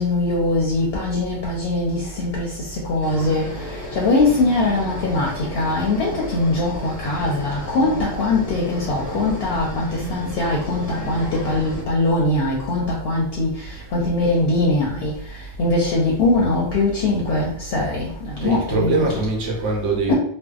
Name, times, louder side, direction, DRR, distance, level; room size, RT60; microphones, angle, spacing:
voice 1, 0.0-3.5 3.9-15.1 15.6-19.1 20.1-20.2, left 2 dB, 65° left, -2 dB, 0.7 m, -21 dB
sound 1, 3.0-11.8, left 1 dB, 20° left, 0.7 m, -33 dB
voice 2, 18.4-20.1, right 3 dB, 80° right, 0 dB, 1.0 m, -22 dB
2.6 x 2.0 x 2.3 m, 0.67 s
omnidirectional pair, 1.2 m